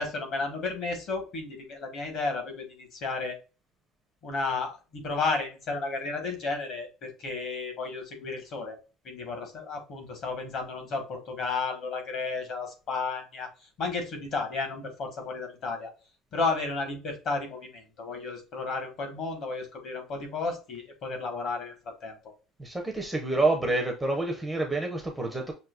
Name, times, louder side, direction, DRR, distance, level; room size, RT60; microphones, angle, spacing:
voice 1, 0.0-3.4 4.2-8.8 9.0-13.5 13.8-15.9 16.3-22.1, left 3 dB, 40° left, 3 dB, 1.2 m, -33 dB
voice 2, 22.6-25.5, right 2 dB, 5° right, 1 dB, 0.5 m, -28 dB
6.0 x 2.6 x 2.3 m, 0.33 s
cardioid pair, 180°, 0 cm